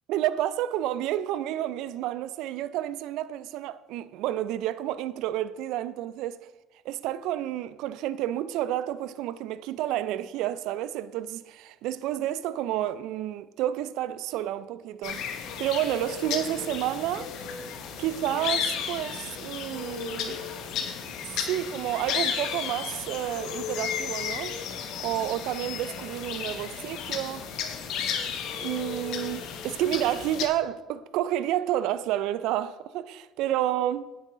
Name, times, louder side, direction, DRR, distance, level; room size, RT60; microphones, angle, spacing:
voice 1, 0.1-6.5 6.8-15.2 15.6-17.3 18.0-20.4 21.3-24.6 25.0-27.5 28.6-34.0, right 12 dB, 70° right, 0.4 m, -30 dB
sound 1, 15.0-30.5, left 7 dB, 70° left, 1.0 m, -33 dB
9.0 x 6.7 x 3.7 m
hypercardioid pair, 65°, 0 cm